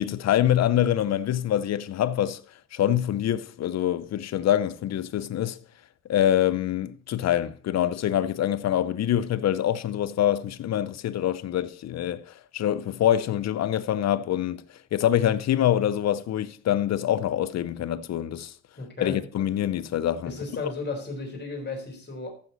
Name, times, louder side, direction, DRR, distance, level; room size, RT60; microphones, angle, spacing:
voice 1, 0.0-2.4 2.7-5.6 6.1-12.2 12.5-14.6 14.9-18.5 19.0-20.3, left 11 dB, 60° left, 0.7 m, -25 dB
voice 2, 18.8-19.2 20.3-22.3, left 3 dB, 35° left, 3.9 m, -34 dB
14.5 x 6.2 x 4.0 m
cardioid pair, 90°, 30 cm